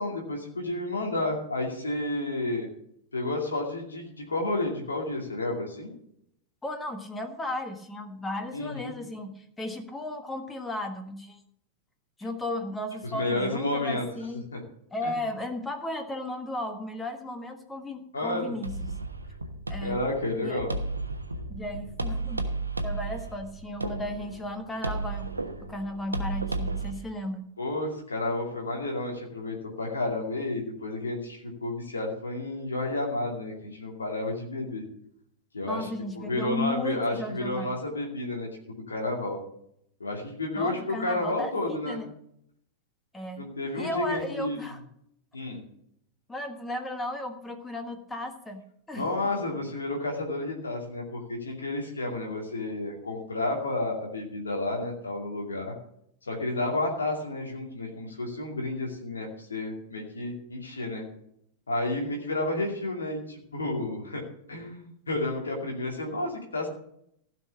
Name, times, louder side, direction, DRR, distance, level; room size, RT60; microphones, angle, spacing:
voice 1, 0.0-2.7 3.1-5.9 8.5-8.9 13.0-14.0 14.5-14.6 18.1-18.5 19.8-20.7 27.6-34.8 35.5-35.9 36.2-39.4 40.0-42.0 43.4-44.6 45.3-45.6 48.9-55.7 56.3-61.0 61.7-64.2 64.5-66.7, left 2 dB, 75° left, 0 dB, 2.5 m, -31 dB
voice 2, 6.6-11.4 12.2-14.4 14.9-18.8 19.7-20.0 20.4-20.6 21.5-22.4 22.8-25.3 25.6-27.4 35.7-37.7 40.6-42.1 43.1-43.5 43.8-44.8 46.3-49.3, left 1 dB, 10° left, 6 dB, 1.4 m, -35 dB
sound 1, 18.6-26.9, right 2 dB, 80° right, 1.1 m, -33 dB
15.5 x 6.0 x 7.1 m, 0.72 s
figure-of-eight pair, 90°, 0 cm